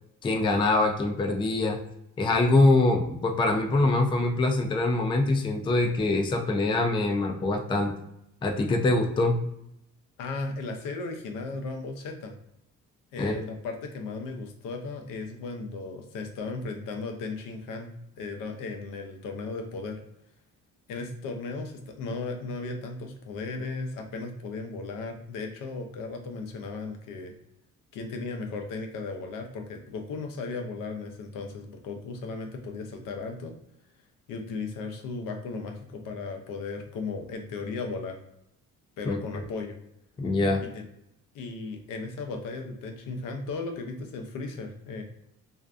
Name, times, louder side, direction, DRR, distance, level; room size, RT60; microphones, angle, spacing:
voice 1, 0.2-1.8 2.2-7.9 8.4-9.4 13.2-13.3 39.1-39.4 40.2-40.6, left 2 dB, 15° left, 4 dB, 0.3 m, -24 dB
voice 2, 10.2-12.3 13.1-17.9 18.2-20.0 20.9-27.3 27.9-33.5 34.3-38.2 39.0-39.8 40.6-40.8 41.3-45.0, left 3 dB, 80° left, 4 dB, 0.6 m, -36 dB
2.5 x 2.2 x 2.4 m, 0.80 s
cardioid pair, 110°, 32 cm